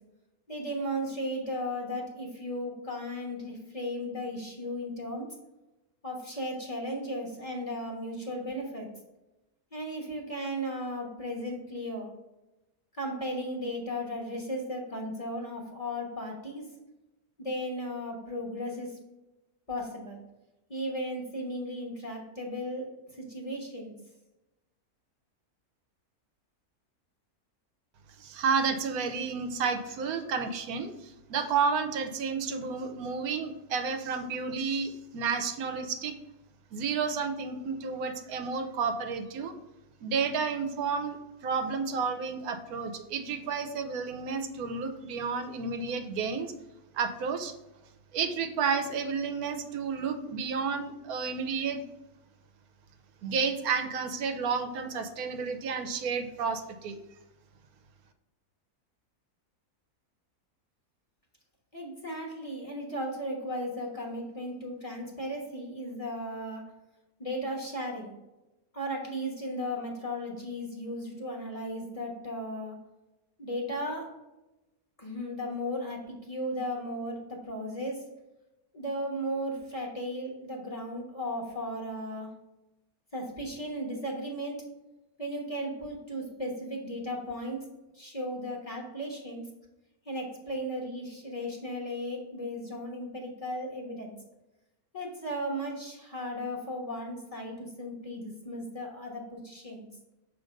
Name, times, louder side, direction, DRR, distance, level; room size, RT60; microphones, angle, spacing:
voice 1, 0.5-5.4 6.0-8.9 9.7-12.1 12.9-16.7 17.4-19.0 19.7-20.2 20.7-23.9 61.7-66.6 67.2-68.2 68.7-72.8 73.4-74.2 75.0-78.1 78.7-82.3 83.1-84.7 85.2-89.4 90.0-94.1 94.9-99.9, equal, 25° left, -1 dB, 1.1 m, -36 dB
voice 2, 28.2-36.1 36.7-39.5 40.0-46.5 46.9-47.5 48.1-51.8 53.2-57.0, right 5 dB, 80° right, 8 dB, 1.2 m, -31 dB
6.4 x 3.2 x 5.0 m, 0.99 s
omnidirectional pair, 1.6 m